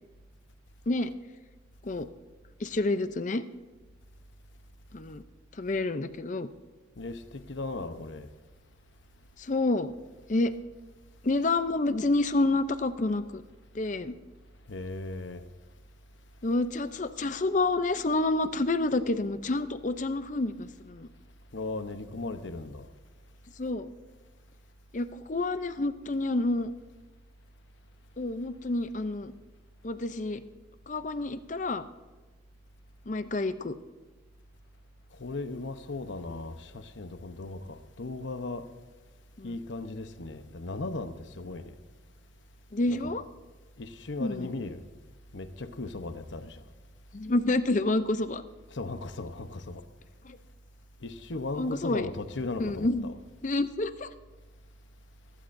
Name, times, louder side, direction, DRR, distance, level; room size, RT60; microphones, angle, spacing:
voice 1, 2.6-3.4 4.9-5.2 5.6-6.5 9.4-9.9 10.3-10.5 11.2-13.4 13.7-14.1 16.4-21.1 23.6-23.9 24.9-26.7 28.2-29.3 29.8-30.4 30.9-31.8 33.1-33.7 39.4-39.5 42.7-43.2 44.2-44.5 47.1-48.4 50.2-50.4 51.6-52.1 52.6-53.1 53.4-54.1, left 2 dB, 40° left, 0.6 m, -28 dB
voice 2, 7.0-8.3 14.7-15.4 21.5-22.9 35.2-38.7 39.4-41.7 42.9-43.1 43.8-44.8 45.3-46.6 48.7-49.8 51.0-53.2, left 2 dB, 75° left, 0.9 m, -37 dB
22.0 x 12.5 x 2.6 m
head